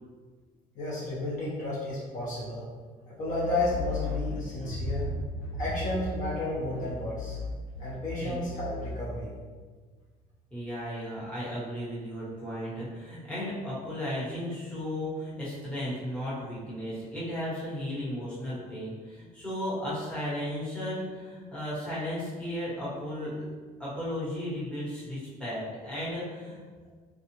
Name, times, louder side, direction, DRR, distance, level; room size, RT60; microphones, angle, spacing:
voice 1, 0.7-2.6 3.1-5.0 5.6-7.4 7.8-9.3, left 2 dB, 55° left, -7 dB, 1.0 m, -32 dB
sound 1, 3.3-6.4 6.6-9.2, left 3 dB, 85° left, 0.5 m, -37 dB
voice 2, 10.5-23.5 23.8-26.6, equal, 5° left, -10 dB, 1.2 m, -35 dB
3.7 x 2.4 x 3.0 m, 1.5 s
cardioid pair, 145°, 16 cm